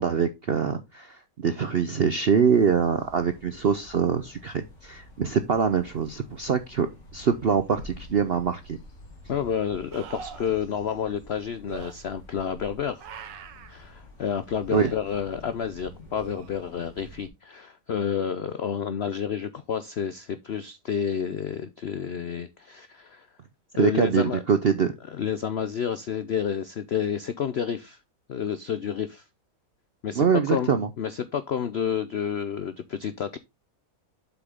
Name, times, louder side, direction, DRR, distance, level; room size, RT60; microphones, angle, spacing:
voice 1, 0.0-8.8 14.7-14.9 23.8-24.9 30.2-30.9, right 6 dB, 70° right, 0.5 m, -24 dB
sound 1, 2.4-17.3, left 1 dB, 55° left, 3.1 m, -48 dB
sound 2, 8.3-8.4 9.9-10.6 11.7-11.9 13.0-13.7 14.7-15.0 16.1-16.8 20.0-20.1, right 7 dB, 85° right, 1.6 m, -42 dB
voice 2, 9.3-13.1 13.7-23.3 23.8-24.4 25.2-28.0 28.3-29.2 30.0-33.4, left 8 dB, 90° left, 0.5 m, -30 dB
7.9 x 5.9 x 3.6 m
omnidirectional pair, 1.9 m